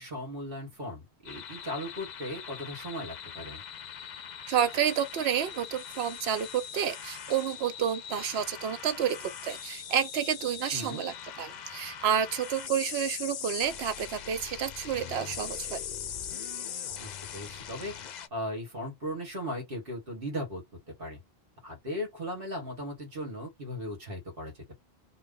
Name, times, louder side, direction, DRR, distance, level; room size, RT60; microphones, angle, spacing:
voice 1, 0.0-3.6 10.7-11.0 17.0-18.0 18.3-21.2 21.6-24.8, equal, 60° right, 1.8 m, -37 dB
sound 1, 1.2-18.3, left 8 dB, 55° left, 0.5 m, -41 dB
voice 2, 4.5-15.8, right 8 dB, 80° right, 0.9 m, -30 dB
3.0 x 2.3 x 3.7 m
omnidirectional pair, 1.1 m